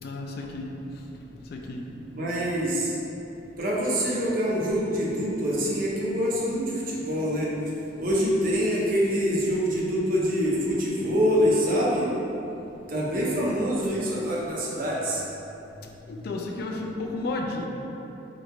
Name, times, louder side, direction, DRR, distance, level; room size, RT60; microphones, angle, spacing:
voice 1, 0.0-0.8 1.5-2.1 16.1-17.7, left 2 dB, 55° left, 1 dB, 0.3 m, -33 dB
voice 2, 2.1-2.9 3.6-7.5 8.0-12.1 12.9-15.2, equal, 50° right, -5 dB, 0.6 m, -25 dB
3.0 x 2.2 x 3.7 m, 2.9 s
head